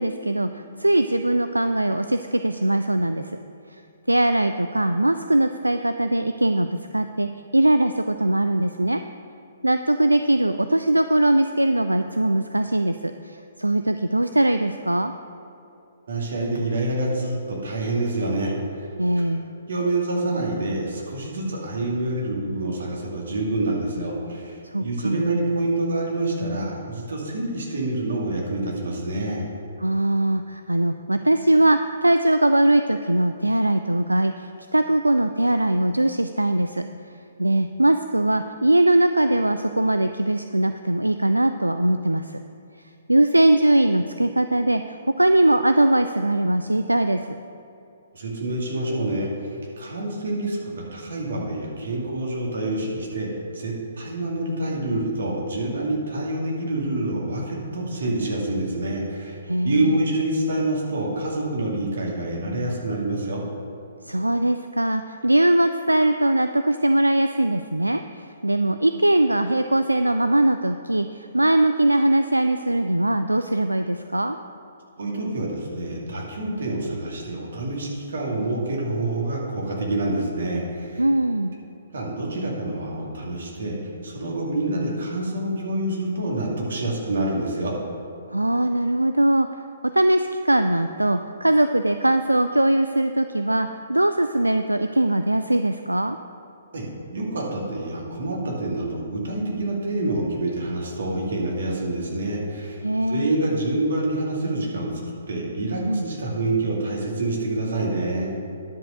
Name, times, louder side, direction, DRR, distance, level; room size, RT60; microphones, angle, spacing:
voice 1, 0.0-3.4 4.1-6.7 6.9-9.0 9.6-15.1 19.0-19.4 24.7-25.4 29.8-36.9 37.4-42.4 43.1-47.4 59.5-60.0 64.1-74.4 81.0-81.5 88.3-89.5 89.9-96.2 102.8-103.3 105.9-106.0, right 1 dB, 85° right, 9 dB, 0.3 m, -21 dB
voice 2, 16.1-18.9 19.7-29.4 48.1-50.6 50.9-53.3 53.5-63.4 75.0-81.0 81.9-83.8 84.0-87.7 96.7-104.9 105.3-108.3, right 2 dB, 60° right, -2 dB, 2.3 m, -27 dB
10.5 x 5.5 x 6.4 m, 2.7 s
figure-of-eight pair, 125°, 0 cm